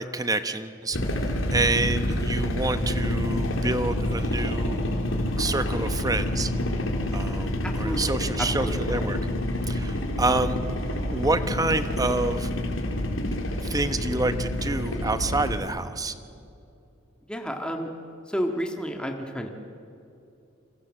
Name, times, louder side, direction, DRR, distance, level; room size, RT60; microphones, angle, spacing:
voice 1, 0.0-4.8 5.4-6.5 7.1-9.2 9.7-10.6 11.1-12.5 13.6-16.1, right 2 dB, 20° right, 10 dB, 1.0 m, -28 dB
sound 1, 0.9-15.6, left 1 dB, 80° left, 3.5 m, -28 dB
voice 2, 7.6-8.1 8.4-8.8 17.3-17.9 18.3-19.5, equal, 5° left, 3 dB, 1.8 m, -31 dB
28.5 x 25.0 x 7.6 m, 2.7 s
head